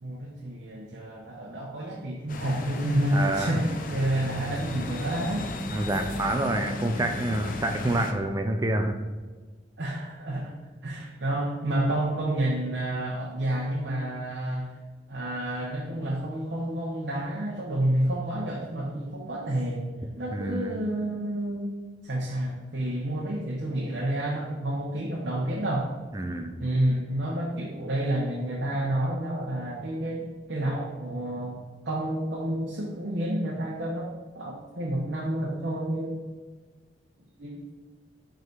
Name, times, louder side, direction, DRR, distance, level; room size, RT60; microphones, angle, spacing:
voice 1, 0.0-5.5 9.8-10.5 10.8-14.7 15.1-19.9 20.2-21.7 22.0-25.9 26.6-31.6 31.8-36.2 37.4-37.6, right 1 dB, 70° right, -3 dB, 0.9 m, -29 dB
sound 1, 2.3-8.1, left 2 dB, 45° left, 0.5 m, -35 dB
voice 2, 3.1-3.6 5.7-8.9 20.3-20.8 26.1-26.5, right 1 dB, 20° right, 5 dB, 0.4 m, -27 dB
5.4 x 3.9 x 4.6 m, 1.4 s
head